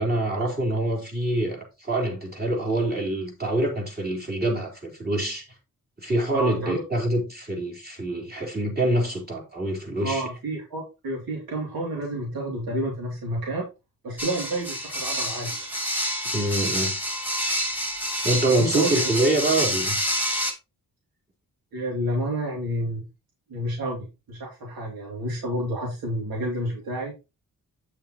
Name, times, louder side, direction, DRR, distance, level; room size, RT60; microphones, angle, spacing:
voice 1, 0.0-5.5 6.0-10.2 16.2-16.9 18.2-20.0, right 1 dB, 25° right, 3.8 m, -25 dB
voice 2, 6.3-6.8 10.0-13.6 14.0-15.7 18.6-18.9 21.7-23.1 23.5-27.1, right 1 dB, 85° right, 2.9 m, -30 dB
sound 1, 14.2-20.5, equal, 5° right, 2.7 m, -28 dB
9.0 x 7.2 x 3.0 m
wide cardioid pair, 115°, 35 cm